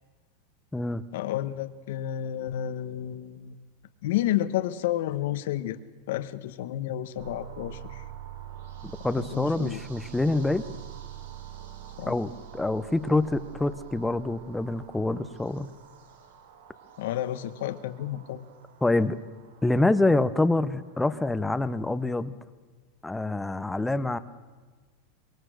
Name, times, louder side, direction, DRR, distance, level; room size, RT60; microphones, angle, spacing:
voice 1, 1.1-3.7 4.0-5.8 6.1-8.0 9.1-9.8 12.0-12.1 17.0-18.4, left 12 dB, 70° left, 12 dB, 1.2 m, -31 dB
sound 1, 7.2-21.0, right 10 dB, 80° right, 3.1 m, -45 dB
voice 2, 8.8-10.6 12.1-15.7 18.8-19.2 19.6-22.3 23.0-24.2, left 2 dB, 5° left, 13 dB, 0.8 m, -26 dB
25.0 x 22.0 x 6.5 m, 1.4 s
supercardioid pair, 150°, 0 cm